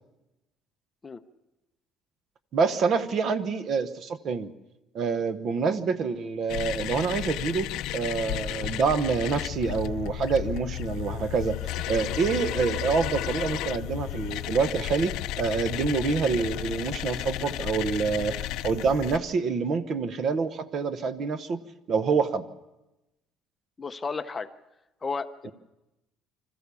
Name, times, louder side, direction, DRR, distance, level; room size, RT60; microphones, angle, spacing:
voice 1, 2.5-4.5 4.9-7.7 7.9-21.6 21.9-22.5 25.4-25.5, right 5 dB, 40° right, 12 dB, 1.0 m, -27 dB
sound 1, 6.5-19.2, left 14 dB, 75° left, 0.6 m, -33 dB
voice 2, 23.8-24.5 25.0-25.5, left 4 dB, 20° left, 9 dB, 0.6 m, -33 dB
25.5 x 14.5 x 6.9 m, 1.0 s
cardioid pair, 160°, 0 cm